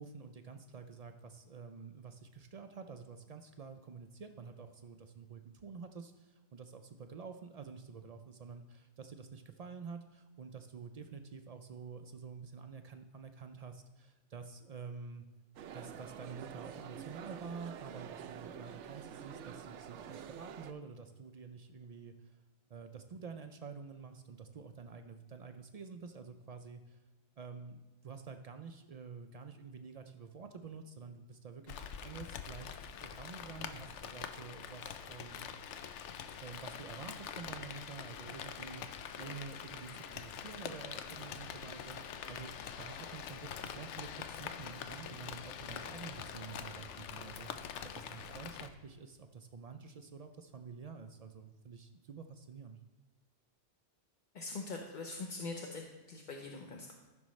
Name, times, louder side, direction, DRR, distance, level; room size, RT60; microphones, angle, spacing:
voice 1, 0.0-15.3 15.7-22.4 22.7-27.0 27.4-35.5 36.4-52.8, right 5 dB, 60° right, 7 dB, 0.4 m, -49 dB
sound 1, 15.6-20.7, right 8 dB, 75° right, 0.9 m, -47 dB
Rain, 31.7-48.7, left 8 dB, 75° left, 0.9 m, -45 dB
voice 2, 54.3-56.9, left 3 dB, 45° left, 1 dB, 0.8 m, -43 dB
14.0 x 6.1 x 3.1 m, 1.2 s
omnidirectional pair, 1.2 m